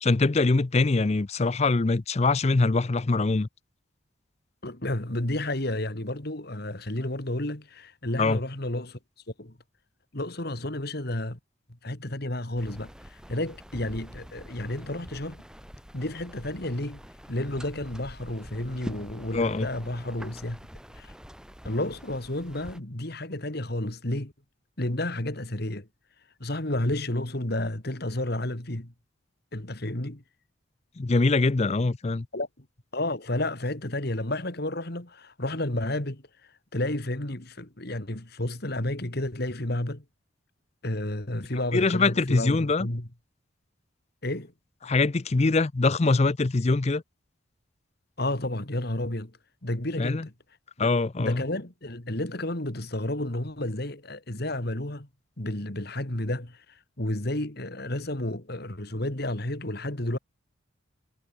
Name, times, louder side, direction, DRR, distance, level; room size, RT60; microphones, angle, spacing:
voice 1, 0.0-3.5 8.2-8.4 19.3-19.7 31.0-32.3 41.7-42.9 44.8-47.0 50.0-50.3 50.8-51.4, left 3 dB, 35° left, 0.5 m, -23 dB
voice 2, 4.6-9.0 9.4-9.6 10.1-11.4 11.8-15.4 15.9-17.0 17.3-20.6 20.9-21.1 21.6-24.3 24.8-25.9 26.4-28.9 29.5-30.2 32.3-32.7 32.9-36.2 36.7-40.0 40.8-43.1 44.2-44.5 48.2-49.4 49.6-50.3 50.8-50.9 51.2-55.1 55.4-56.6 57.0-60.2, left 1 dB, 50° left, 2.5 m, -31 dB
sound 1, 12.6-22.8, equal, 5° right, 5.6 m, -45 dB
head